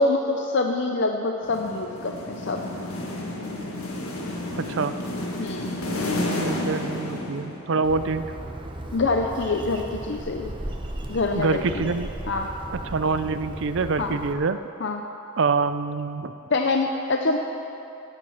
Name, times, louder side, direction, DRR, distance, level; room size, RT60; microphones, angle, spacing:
voice 1, 0.0-2.6 5.4-5.7 8.9-10.5 11.1-11.9 12.3-12.5 14.0-14.2 14.8-15.0 16.5-17.4, left 3 dB, 55° left, 3 dB, 0.7 m, -25 dB
sound 1, 1.4-7.9, left 1 dB, 80° left, 1.8 m, -31 dB
voice 2, 4.5-4.9 6.4-8.3 11.4-12.1 12.7-14.6 15.4-16.3, right 4 dB, 55° right, 12 dB, 0.5 m, -25 dB
Bird, 7.8-14.3, right 1 dB, 20° right, 0.9 m, -36 dB
16.0 x 9.3 x 5.7 m, 2.8 s
head